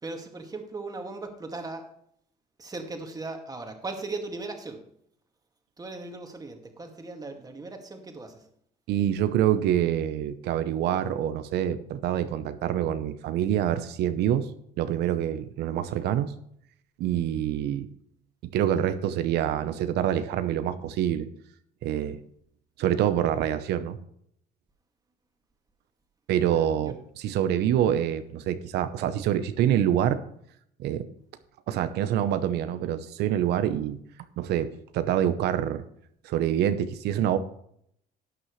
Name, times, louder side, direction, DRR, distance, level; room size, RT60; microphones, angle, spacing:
voice 1, 0.0-1.9 2.6-4.8 5.8-8.4 26.5-26.9, right 3 dB, 20° right, 4 dB, 2.1 m, -38 dB
voice 2, 8.9-14.5 14.8-16.3 17.0-17.9 18.5-21.3 21.8-22.2 22.8-24.0 26.3-30.2 30.8-31.1 31.7-34.0 34.4-35.8 36.2-37.4, right 10 dB, 80° right, 11 dB, 0.8 m, -26 dB
12.0 x 9.6 x 3.2 m, 0.70 s
cardioid pair, 110°, 17 cm